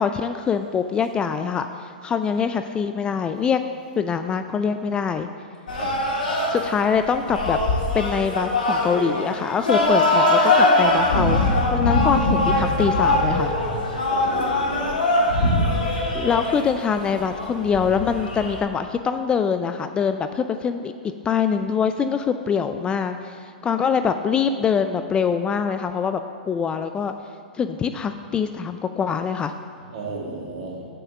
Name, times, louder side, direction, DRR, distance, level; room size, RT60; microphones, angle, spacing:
voice 1, 0.0-3.6 4.0-5.3 6.5-7.6 7.9-13.5 16.1-20.9 21.2-26.2 26.5-27.1 27.6-29.5, left 6 dB, 20° left, 8 dB, 0.3 m, -24 dB
sound 1, 5.7-18.6, left 2 dB, 80° left, 1.5 m, -21 dB
voice 2, 5.7-6.0 14.1-15.0 29.9-30.9, right 3 dB, 50° right, -2 dB, 2.0 m, -33 dB
6.9 x 5.6 x 6.4 m, 2.2 s
hypercardioid pair, 110°, 5 cm